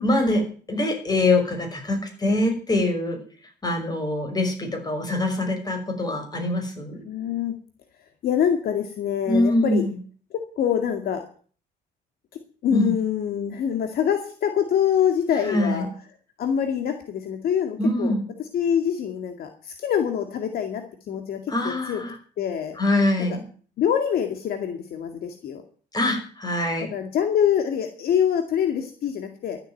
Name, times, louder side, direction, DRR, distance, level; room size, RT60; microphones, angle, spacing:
voice 1, 0.0-3.2 3.6-7.0 9.3-9.9 12.7-12.9 15.4-15.9 17.8-18.2 21.5-22.1 22.8-23.4 25.9-26.9, left 1 dB, 25° left, 4 dB, 5.6 m, -24 dB
voice 2, 7.0-7.5 8.2-9.8 10.3-11.2 12.6-15.9 16.4-18.1 18.4-21.4 21.6-22.0 22.4-22.8 23.8-25.6 26.9-29.6, left 8 dB, 65° left, 5 dB, 2.2 m, -25 dB
13.5 x 8.3 x 9.2 m, 0.43 s
cardioid pair, 110°, 17 cm